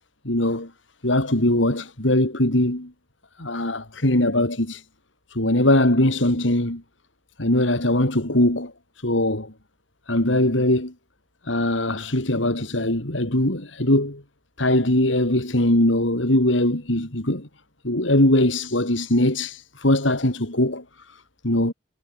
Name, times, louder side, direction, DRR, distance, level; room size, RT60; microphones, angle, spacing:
voice 1, 0.2-0.7 1.0-2.9 3.4-4.8 5.3-6.8 7.4-8.7 9.0-9.5 10.1-10.9 11.5-14.2 14.6-17.5 17.8-20.8 21.1-21.7, left 1 dB, 75° left, 4.2 m, -21 dB
head